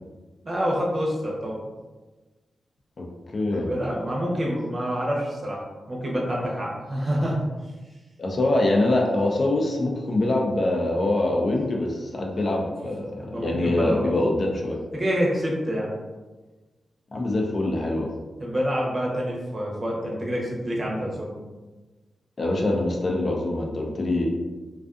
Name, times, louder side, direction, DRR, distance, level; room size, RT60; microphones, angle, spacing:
voice 1, 0.4-1.5 3.5-7.4 13.2-14.1 14.9-15.9 18.4-21.4, equal, 40° right, -3 dB, 0.7 m, -27 dB
voice 2, 3.3-3.7 8.2-14.8 17.1-18.1 22.4-24.3, left 2 dB, 50° left, 0 dB, 0.5 m, -24 dB
2.4 x 2.4 x 2.4 m, 1.2 s
cardioid pair, 70°, 0 cm